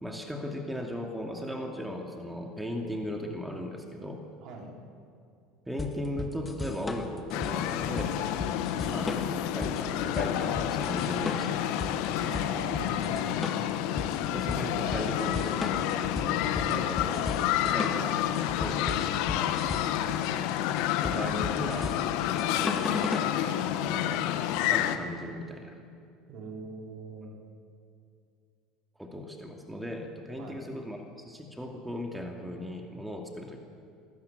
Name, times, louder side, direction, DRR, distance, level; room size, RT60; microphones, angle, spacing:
voice 1, 0.0-4.2 5.7-8.2 8.9-12.0 14.3-16.1 16.7-19.6 21.0-23.2 23.8-25.8 29.0-33.6, equal, 5° right, 2 dB, 2.6 m, -37 dB
voice 2, 4.4-4.7 8.8-9.3 12.2-13.5 19.9-20.2 26.3-27.3 30.4-30.6, right 3 dB, 55° right, 1 dB, 4.2 m, -43 dB
sound 1, 5.8-23.3, left 3 dB, 20° left, 2.0 m, -36 dB
sound 2, 7.3-25.0, left 11 dB, 65° left, 1.2 m, -29 dB
21.5 x 13.0 x 9.6 m, 2.4 s
hypercardioid pair, 80°, 0 cm